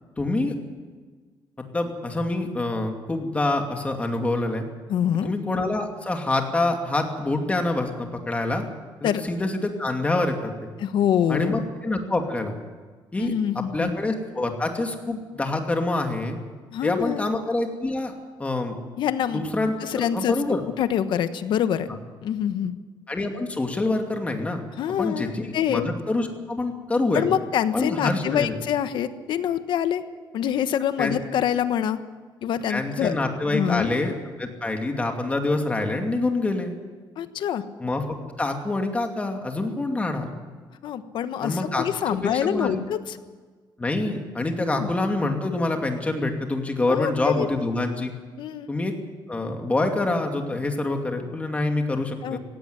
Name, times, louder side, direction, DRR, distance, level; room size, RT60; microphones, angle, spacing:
voice 1, 0.2-0.5 1.7-4.6 5.2-8.6 9.0-10.7 11.3-12.5 13.1-16.4 16.8-18.1 18.4-18.8 19.3-20.6 23.1-24.6 25.0-27.3 27.7-28.6 31.0-31.1 32.7-34.1 34.4-36.7 37.8-38.0 38.4-40.3 41.4-42.8 43.8-48.1 48.7-48.9 49.3-52.4, left 2 dB, 15° left, 4 dB, 2.5 m, -26 dB
voice 2, 4.9-5.3 9.0-9.2 10.8-11.7 13.2-13.9 16.7-17.3 19.0-19.4 19.8-21.9 22.2-22.7 24.8-25.9 27.1-30.0 30.3-32.0 32.4-33.1 33.5-34.0 37.2-37.6 40.8-43.2 44.7-44.9 46.9-47.5 48.4-48.7 52.2-52.4, left 9 dB, 65° left, 11 dB, 1.3 m, -25 dB
17.5 x 16.5 x 9.8 m, 1.5 s
cardioid pair, 150°, 8 cm